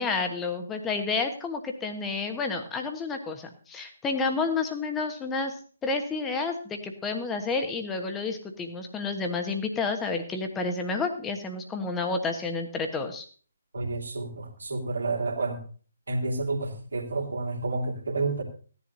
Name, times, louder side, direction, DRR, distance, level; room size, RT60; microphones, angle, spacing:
voice 1, 0.0-5.6 5.8-13.3, left 4 dB, 10° left, 5 dB, 1.3 m, -30 dB
voice 2, 13.7-15.6 16.1-18.4, right 3 dB, 65° right, 2 dB, 2.9 m, -30 dB
16.5 x 10.5 x 2.7 m, 0.41 s
figure-of-eight pair, 140°, 0 cm